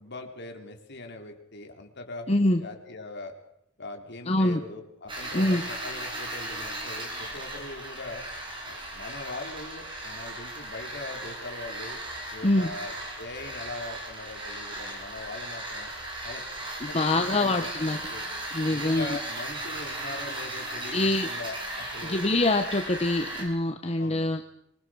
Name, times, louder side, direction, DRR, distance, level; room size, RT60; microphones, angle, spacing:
voice 1, 0.0-3.3 3.8-8.3 8.6-12.0 12.3-15.9 16.2-18.3 18.7-22.2 24.0-24.3, left 2 dB, 60° left, 4 dB, 3.6 m, -41 dB
voice 2, 2.3-2.6 4.3-4.6 5.3-5.6 12.4-12.7 16.8-18.0 18.5-19.2 20.9-21.3 22.0-24.4, left 2 dB, 30° left, 6 dB, 1.2 m, -24 dB
sound 1, 5.1-23.4, right 1 dB, 25° right, 7.2 m, -37 dB
25.0 x 21.0 x 6.4 m, 0.76 s
head